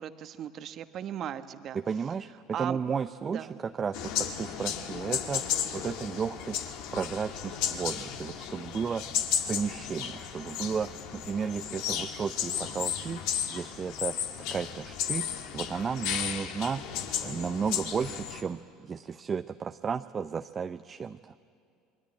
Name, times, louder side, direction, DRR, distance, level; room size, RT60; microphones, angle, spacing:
voice 1, 0.0-1.8 2.5-2.8 3.3-3.6, right 10 dB, 50° right, 10 dB, 1.3 m, -37 dB
voice 2, 1.7-5.4 5.7-6.6 6.9-9.0 9.5-13.2 13.5-14.2 14.5-21.3, right 6 dB, 30° right, 10 dB, 0.6 m, -33 dB
sound 1, 3.9-18.4, left 9 dB, 65° left, 1.8 m, -34 dB
28.5 x 22.0 x 8.8 m, 2.4 s
hypercardioid pair, 70°, 0 cm